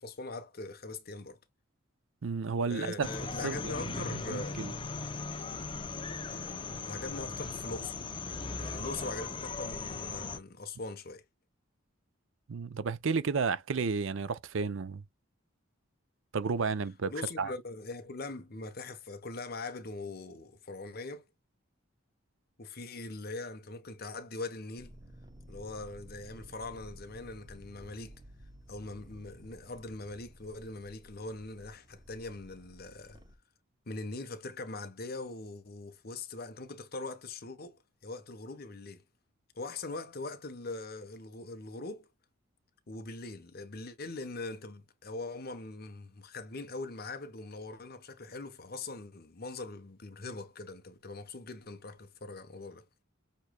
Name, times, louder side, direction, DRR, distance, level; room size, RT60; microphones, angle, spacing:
voice 1, 0.0-1.4 2.7-4.6 6.8-8.0 8.5-11.2 17.1-21.2 22.6-25.0 25.5-28.2 28.7-33.2 33.9-39.0 39.6-42.1 42.9-52.8, left 3 dB, 50° left, 0.9 m, -42 dB
voice 2, 2.2-3.1 3.4-4.7 12.5-15.0 16.3-17.5, right 5 dB, 70° right, 0.5 m, -32 dB
sound 1, 3.0-10.4, left 4 dB, 25° left, 0.5 m, -38 dB
sound 2, 24.8-33.4, equal, 20° right, 0.8 m, -53 dB
6.7 x 3.1 x 2.2 m
head